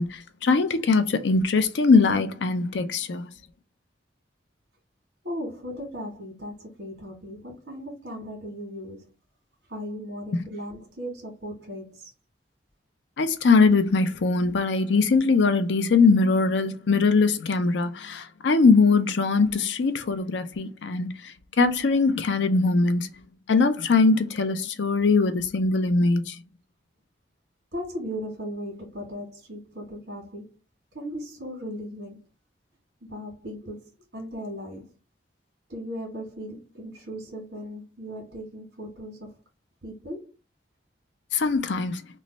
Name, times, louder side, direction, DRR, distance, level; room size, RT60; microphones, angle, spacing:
voice 1, 0.0-3.3 10.3-10.4 13.2-21.1 21.6-23.1 23.5-26.3 41.3-42.0, left 4 dB, 75° left, 0.5 m, -21 dB
voice 2, 5.2-9.1 9.7-12.1 27.7-30.6 30.9-32.3 33.1-35.0 35.7-39.3 39.8-40.3, equal, 60° right, 1.5 m, -37 dB
3.1 x 2.2 x 3.9 m
head